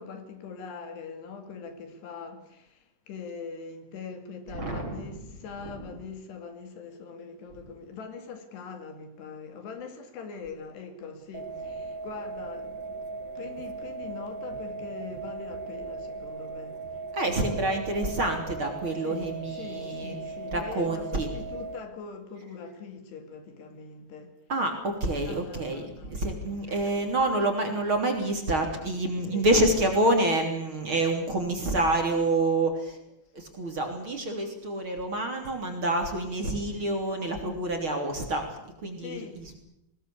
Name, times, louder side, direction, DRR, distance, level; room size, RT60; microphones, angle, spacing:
voice 1, 0.0-13.0 13.4-16.8 19.0-24.3 25.3-26.7 29.2-29.6 39.0-39.4, left 5 dB, 75° left, 4.4 m, -42 dB
voice 2, 4.5-5.1 5.6-5.8 17.1-20.2 20.5-21.3 24.5-33.0 33.3-39.6, right 2 dB, 30° right, 3.6 m, -27 dB
sound 1, 11.3-21.8, right 4 dB, 75° right, 3.7 m, -38 dB
Telephone, 17.2-17.9 18.5-18.6 20.3-20.5 20.9-21.1 26.3-27.2 34.3-34.5, left 6 dB, 45° left, 4.4 m, -48 dB
20.5 x 20.0 x 8.5 m
omnidirectional pair, 4.9 m